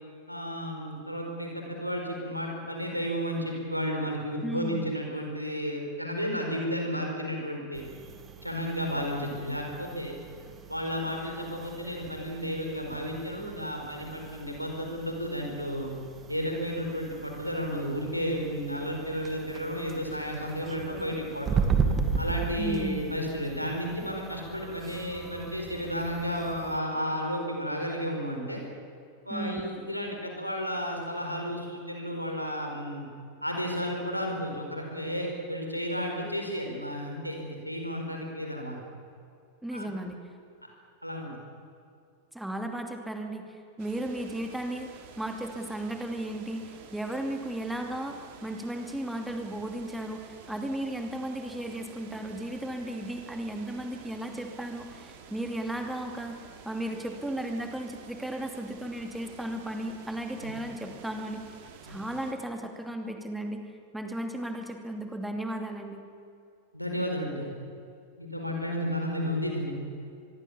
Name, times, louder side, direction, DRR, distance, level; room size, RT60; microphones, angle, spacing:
voice 1, 0.3-7.8 8.4-10.2 10.7-15.9 16.3-21.6 22.2-28.6 29.3-33.0 33.4-38.8 39.7-39.9 40.6-40.7 41.0-41.4 60.4-60.5 61.8-62.0 66.7-67.5 68.2-69.7, equal, 90° left, 2 dB, 4.8 m, -32 dB
voice 2, 4.4-4.8 22.6-23.0 29.3-29.6 39.6-40.2 42.3-56.4 56.6-61.4 61.8-63.6 63.9-66.0, right 1 dB, 5° right, 4 dB, 2.7 m, -35 dB
sound 1, 7.7-26.8, right 5 dB, 25° right, 2.3 m, -36 dB
sound 2, 21.2-26.1, left 2 dB, 20° left, 5.1 m, -53 dB
sound 3, 43.8-62.3, right 7 dB, 50° right, 3.0 m, -50 dB
25.0 x 22.5 x 7.2 m, 2.5 s
figure-of-eight pair, 90°, 0 cm